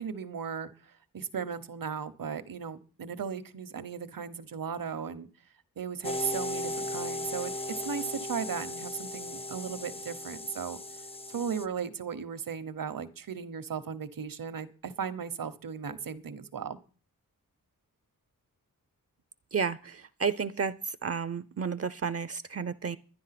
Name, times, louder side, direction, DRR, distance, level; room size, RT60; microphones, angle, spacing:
voice 1, 0.0-5.3 5.8-7.5 7.8-10.8 11.3-16.8, right 6 dB, 70° right, 12 dB, 1.1 m, -36 dB
sound 1, 6.0-11.6, left 1 dB, 15° left, 0.6 m, -37 dB
voice 2, 19.5-20.7 21.0-23.0, right 6 dB, 45° right, 15 dB, 0.6 m, -31 dB
12.0 x 10.5 x 5.9 m, 0.37 s
wide cardioid pair, 150°, 34 cm